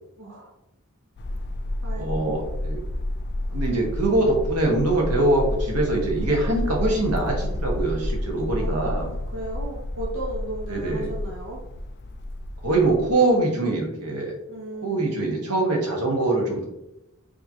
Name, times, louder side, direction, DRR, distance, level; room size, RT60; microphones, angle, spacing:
voice 1, 0.2-0.5 1.8-2.5 8.6-11.6 14.5-15.3, right 1 dB, 65° right, -3 dB, 0.8 m, -36 dB
sound 1, 1.2-13.1, left 1 dB, 50° left, 0.4 m, -30 dB
voice 2, 2.0-2.8 3.5-9.1 10.7-11.1 12.6-14.3 14.8-16.7, right 2 dB, 90° right, 0 dB, 1.2 m, -23 dB
4.8 x 2.8 x 2.8 m, 0.89 s
head